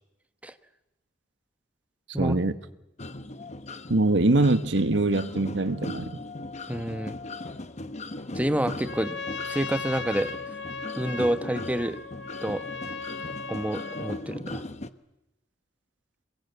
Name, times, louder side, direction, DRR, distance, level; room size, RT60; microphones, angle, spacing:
voice 1, 2.2-2.5 3.9-6.2, right 2 dB, 80° right, 1.3 m, -23 dB
sound 1, 3.0-14.9, left 2 dB, 40° left, 1.1 m, -39 dB
voice 2, 6.7-7.2 8.3-9.2 9.5-10.3 10.9-12.0 12.4-12.6 13.5-14.6, right 1 dB, 10° right, 1.2 m, -28 dB
Trumpet, 8.7-14.2, left 4 dB, 70° left, 2.0 m, -37 dB
27.0 x 22.0 x 8.1 m
head